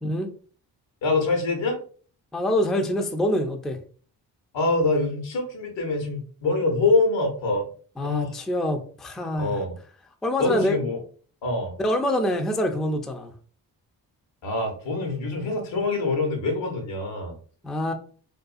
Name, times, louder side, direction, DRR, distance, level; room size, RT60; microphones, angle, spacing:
voice 1, 1.0-1.8 4.5-7.7 8.0-8.3 9.4-9.8 10.4-11.0 11.4-11.7 14.4-17.4, left 3 dB, 80° left, 3 dB, 0.9 m, -25 dB
voice 2, 2.3-3.8 8.0-9.6 10.2-10.8 11.8-13.3 17.6-17.9, left 1 dB, ahead, 5 dB, 0.3 m, -25 dB
2.5 x 2.3 x 2.4 m, 0.43 s
supercardioid pair, 40°, 45 cm